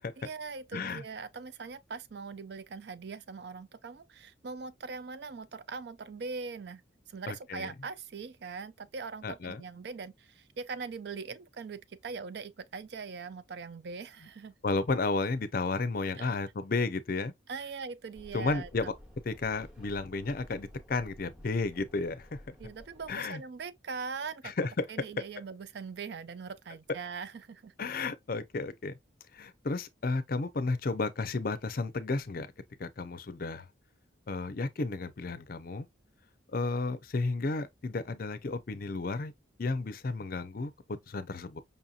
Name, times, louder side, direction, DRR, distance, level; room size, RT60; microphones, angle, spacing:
voice 1, 0.2-6.8 7.1-14.5 16.2-16.3 17.5-18.9 22.6-24.5 24.9-27.7, right 5 dB, 55° right, 0.4 m, -41 dB
voice 2, 0.7-1.0 7.3-7.7 9.2-9.6 14.6-17.3 18.3-18.9 19.2-22.6 23.1-23.4 24.4-24.9 27.8-28.9 29.3-32.5 32.8-33.7 34.3-35.9 36.5-39.3 39.6-40.7 41.1-41.6, left 3 dB, 45° left, 0.5 m, -33 dB
sound 1, 18.1-23.1, equal, 5° right, 0.8 m, -52 dB
5.4 x 2.7 x 2.4 m
head